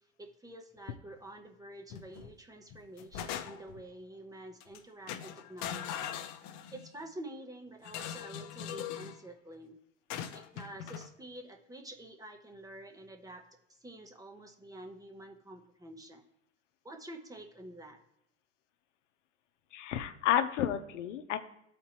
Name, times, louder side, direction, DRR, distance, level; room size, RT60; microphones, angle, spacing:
voice 1, 0.2-6.1 6.7-9.8 10.3-13.5 13.8-16.2 16.8-18.0, right 1 dB, 10° right, 4 dB, 0.9 m, -48 dB
sound 1, 1.9-2.3 2.7-3.8 4.6-4.8 5.1-6.9 7.8-9.2 10.1-11.1, left 9 dB, 50° left, 0.7 m, -41 dB
voice 2, 19.7-21.4, left 10 dB, 80° left, 9 dB, 0.8 m, -31 dB
12.0 x 4.3 x 2.9 m, 0.83 s
hypercardioid pair, 105°, 36 cm